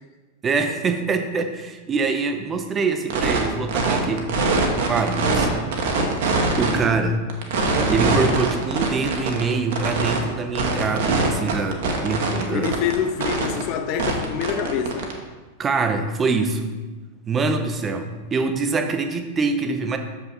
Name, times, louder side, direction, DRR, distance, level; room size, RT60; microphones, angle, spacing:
voice 1, 0.4-4.2 4.9-5.7 6.6-7.2 7.6-12.7 15.6-16.8 17.3-20.0, right 4 dB, 20° right, 0.7 m, -24 dB
sound 1, 3.1-3.4 3.7-5.5 5.7-6.8 7.3-10.2 10.6-12.9 13.2-13.6 14.0-15.1, right 3 dB, 55° right, 1.0 m, -22 dB
voice 2, 12.5-15.1, left 7 dB, 45° left, 0.7 m, -26 dB
6.9 x 5.5 x 4.1 m
figure-of-eight pair, 90°, 0 cm